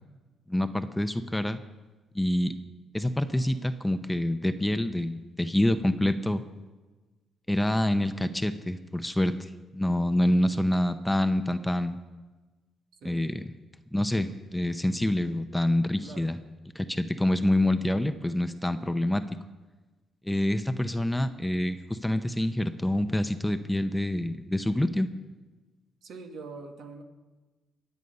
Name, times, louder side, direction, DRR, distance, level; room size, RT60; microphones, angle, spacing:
voice 1, 0.5-1.6 2.1-2.5 2.9-6.4 7.5-12.0 13.0-13.5 13.9-16.4 16.7-19.2 20.2-25.1, left 1 dB, 5° left, 10 dB, 0.8 m, -27 dB
voice 2, 13.0-13.3 16.0-16.3 26.0-27.0, right 4 dB, 75° right, 4 dB, 1.9 m, -43 dB
22.0 x 8.3 x 5.5 m, 1.2 s
cardioid pair, 90°, 0 cm